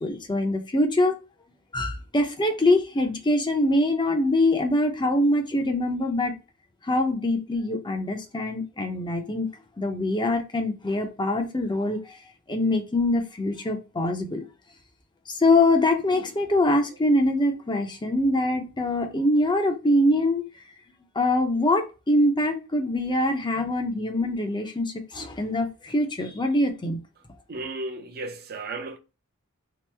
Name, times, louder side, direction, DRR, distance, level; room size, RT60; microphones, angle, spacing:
voice 1, 0.0-1.2 1.7-6.3 6.8-9.5 9.8-12.2 12.5-14.4 15.3-20.4 21.2-27.0, left 1 dB, 20° left, 0.6 m, -24 dB
voice 2, 27.5-29.0, right 2 dB, 45° right, 0.6 m, -34 dB
3.0 x 2.5 x 3.3 m
head